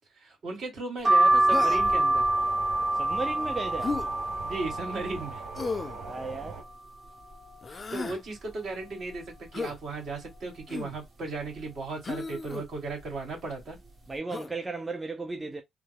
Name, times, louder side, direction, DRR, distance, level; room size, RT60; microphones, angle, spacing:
voice 1, 0.2-2.2 4.4-5.4 7.9-13.8, right 3 dB, 60° right, 2.0 m, -36 dB
sound 1, 1.0-6.7 7.2-7.9 8.3-8.4 8.6-9.7 10.2-10.6 11.4-11.7 12.5-12.7 13.0-13.2, right 2 dB, 45° right, 1.4 m, -27 dB
sound 2, 1.2-6.6, right 5 dB, 80° right, 0.8 m, -42 dB
Human voice, 1.5-2.0 3.8-4.1 5.6-6.0 7.6-8.2 9.5-9.8 10.7-11.0 12.0-12.7 14.3-14.5, left 4 dB, 30° left, 0.4 m, -34 dB
voice 2, 2.9-4.0 5.9-6.6 14.1-15.6, right 3 dB, 20° right, 0.5 m, -35 dB
3.3 x 2.0 x 3.4 m
cardioid pair, 90°, 0 cm